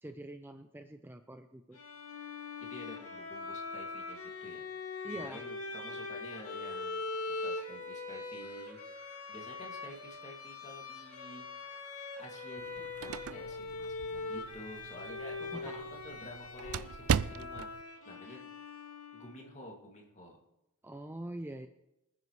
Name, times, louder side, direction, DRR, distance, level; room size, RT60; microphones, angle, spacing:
voice 1, 0.0-1.8 5.0-5.4 15.5-15.8 18.2-18.4 20.8-21.7, right 1 dB, 10° right, 7 dB, 0.5 m, -44 dB
Bowed string instrument, 1.7-19.6, left 3 dB, 80° left, 2.3 m, -42 dB
voice 2, 2.6-4.6 5.1-7.0 7.4-11.8 12.2-12.7 13.0-18.5 19.1-20.4, equal, 30° left, 0 dB, 2.4 m, -50 dB
sound 1, 8.4-13.4, right 2 dB, 45° right, 4.7 m, -62 dB
sound 2, 12.6-17.8, right 7 dB, 65° right, 0.4 m, -38 dB
24.5 x 9.6 x 3.2 m, 0.91 s
head